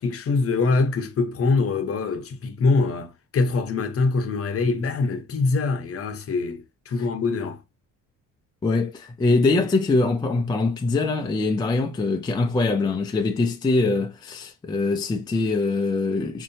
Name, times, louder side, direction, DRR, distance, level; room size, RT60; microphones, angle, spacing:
voice 1, 0.0-7.6, left 3 dB, 45° left, 0.8 m, -24 dB
voice 2, 8.6-16.4, left 3 dB, 15° left, 0.4 m, -23 dB
4.4 x 2.7 x 2.6 m
cardioid pair, 120°, 33 cm